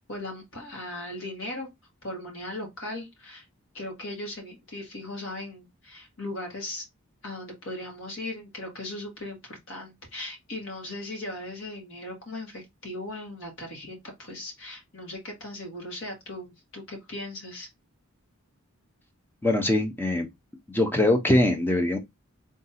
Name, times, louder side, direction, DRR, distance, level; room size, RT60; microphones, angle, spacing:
voice 1, 0.1-1.7 2.0-3.5 3.7-6.8 7.2-17.7, left 1 dB, 65° left, 1.8 m, -38 dB
voice 2, 19.4-20.3 20.7-22.0, left 1 dB, 10° left, 0.6 m, -22 dB
3.6 x 2.6 x 4.1 m
head